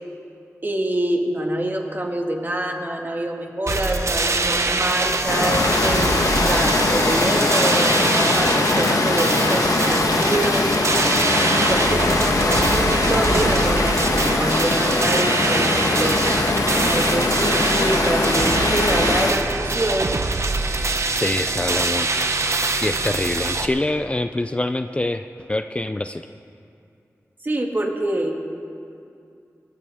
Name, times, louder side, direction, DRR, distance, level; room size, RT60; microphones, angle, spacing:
voice 1, 0.6-10.7 11.6-16.2 16.7-20.2 27.4-28.4, right 1 dB, 35° right, 1 dB, 1.9 m, -26 dB
sound 1, 3.7-23.7, right 3 dB, 55° right, 0.9 m, -24 dB
Water, 5.3-19.3, left 2 dB, 85° left, 1.3 m, -21 dB
voice 2, 11.9-12.5 21.1-22.3 22.8-26.3, left 2 dB, 20° left, 8 dB, 0.4 m, -25 dB
23.0 x 13.5 x 3.6 m, 2.6 s
wide cardioid pair, 70°, 6 cm